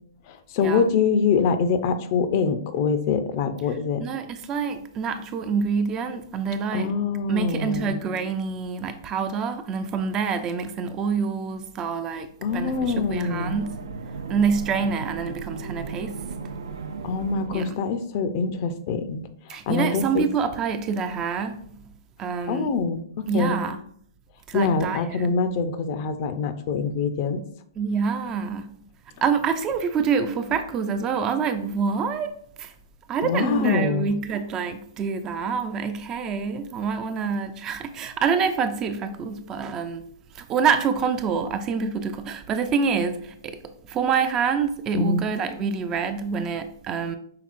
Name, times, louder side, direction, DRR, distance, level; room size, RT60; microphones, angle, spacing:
voice 1, 0.3-4.0 6.7-8.0 12.4-13.6 17.0-20.3 22.5-23.6 24.5-27.4 33.2-34.1 44.9-45.2, left 5 dB, 45° left, 0.5 m, -25 dB
voice 2, 4.0-6.9 7.3-13.7 14.3-16.2 17.5-17.8 19.5-21.6 22.2-22.7 23.3-23.8 24.5-25.3 27.8-28.7 29.2-32.3 32.6-32.7 33.1-40.0 40.3-47.2, right 6 dB, 25° right, 0.4 m, -26 dB
sound 1, 12.5-17.7, right 4 dB, 75° right, 0.5 m, -36 dB
5.8 x 3.5 x 2.5 m
hypercardioid pair, 120°, 2 cm